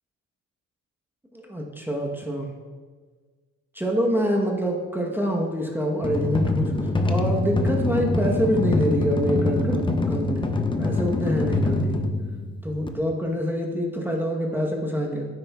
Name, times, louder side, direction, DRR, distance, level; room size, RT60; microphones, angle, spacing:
voice 1, 1.3-2.5 3.7-6.7 7.1-10.5 10.8-12.0 12.6-15.3, equal, 5° right, -1 dB, 1.0 m, -26 dB
sound 1, 6.0-12.9, left 2 dB, 15° left, 0.6 m, -24 dB
9.6 x 7.8 x 2.3 m, 1.5 s
cardioid pair, 90°, 30 cm